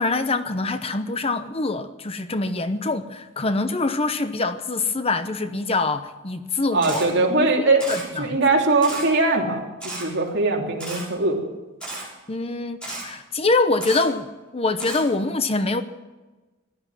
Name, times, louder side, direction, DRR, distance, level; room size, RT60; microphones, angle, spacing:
voice 1, 0.0-7.5 7.9-8.4 12.3-15.8, left 3 dB, 30° left, 0.8 m, -25 dB
voice 2, 6.7-7.8 8.2-11.4, right 3 dB, 55° right, 3.3 m, -21 dB
Camera, 6.8-7.0 7.8-8.0 8.8-9.0 9.8-10.0 10.8-11.0 11.8-12.0 12.8-13.0 13.8-14.0 14.8-15.0, right 2 dB, 5° left, 7.1 m, -33 dB
17.0 x 11.5 x 7.4 m
head